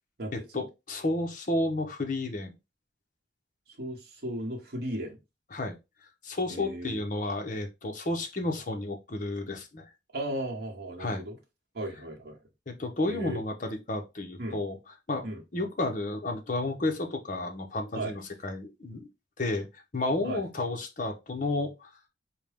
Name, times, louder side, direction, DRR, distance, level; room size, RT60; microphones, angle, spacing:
voice 1, 0.3-2.5 5.5-5.8 6.2-9.9 11.0-11.3 12.7-14.8 15.1-15.2 15.5-19.1 19.4-19.7 19.9-21.9, left 2 dB, 45° left, 0.7 m, -31 dB
voice 2, 3.8-5.2 6.5-7.0 10.1-11.4 11.7-12.4 13.1-13.4 14.4-14.6 15.2-15.4 17.9-18.1 20.2-20.4, right 1 dB, 55° right, 1.0 m, -35 dB
4.5 x 2.1 x 3.4 m
head